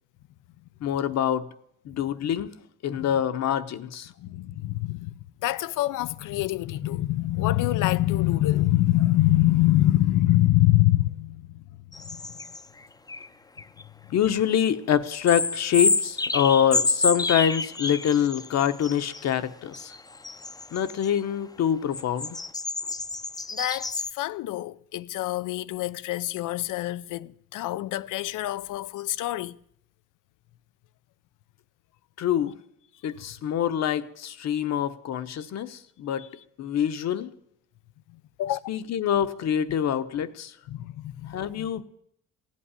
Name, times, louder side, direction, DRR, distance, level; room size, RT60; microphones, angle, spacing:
voice 1, 0.8-1.5 1.8-2.5 2.8-4.1 14.1-19.9 20.7-22.4 32.2-32.5 33.0-36.3 36.6-37.3 38.7-40.5 41.3-41.8, left 9 dB, 60° left, 1.1 m, -25 dB
voice 2, 4.2-5.1 5.4-11.6 12.0-12.4 23.5-29.6 36.2-36.3 38.1-38.6 40.7-41.8, left 15 dB, 85° left, 0.6 m, -25 dB
sound 1, 11.9-12.6 13.1-13.3 13.6-13.8 15.2-19.2 19.7-21.2 21.9-24.1, left 3 dB, 10° left, 0.6 m, -28 dB
16.0 x 8.6 x 9.9 m
cardioid pair, 145°, 30 cm